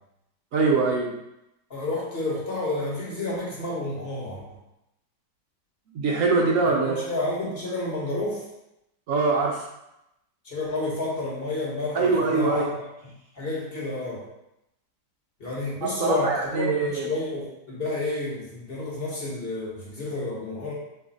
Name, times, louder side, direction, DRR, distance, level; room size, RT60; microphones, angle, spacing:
voice 1, 0.5-1.2 5.9-7.0 9.1-9.7 11.9-12.7 15.8-17.1, right 4 dB, 65° right, -1 dB, 0.8 m, -23 dB
voice 2, 1.7-4.4 6.6-8.4 10.4-12.7 13.3-14.2 15.4-20.7, left 2 dB, 40° left, -5 dB, 1.2 m, -30 dB
3.6 x 3.2 x 4.0 m, 0.88 s
omnidirectional pair, 1.8 m